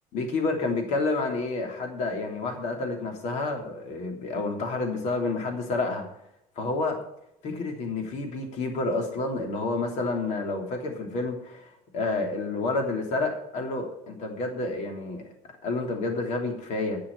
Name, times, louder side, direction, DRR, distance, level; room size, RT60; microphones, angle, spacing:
voice 1, 0.1-6.1 6.5-7.0 7.4-15.2 15.6-17.0, left 3 dB, 60° left, 3 dB, 3.1 m, -29 dB
10.5 x 6.9 x 8.4 m, 0.80 s
cardioid pair, 155°, 14 cm